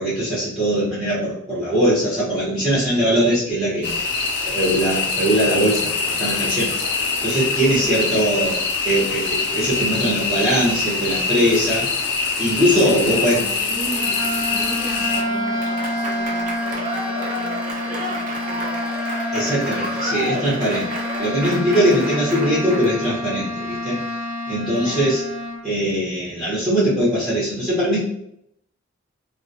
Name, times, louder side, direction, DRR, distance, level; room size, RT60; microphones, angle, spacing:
voice 1, 0.0-3.9 4.4-6.8 7.2-8.6 8.8-11.9 12.4-13.4 19.3-20.9 21.2-24.0 24.5-25.2 25.6-28.0, equal, ahead, -11 dB, 0.8 m, -21 dB
sound 1, 3.8-15.2, left 4 dB, 55° left, 0.3 m, -24 dB
voice 2, 7.7-8.0 12.8-14.2 14.5-18.9 24.7-25.1, right 1 dB, 15° right, -13 dB, 1.0 m, -36 dB
sound 2, 13.8-25.6, left 2 dB, 75° right, 0.7 m, -28 dB
Applause / Crowd, 14.9-23.1, right 1 dB, 40° right, 0.4 m, -30 dB
2.2 x 2.1 x 2.6 m, 0.72 s
head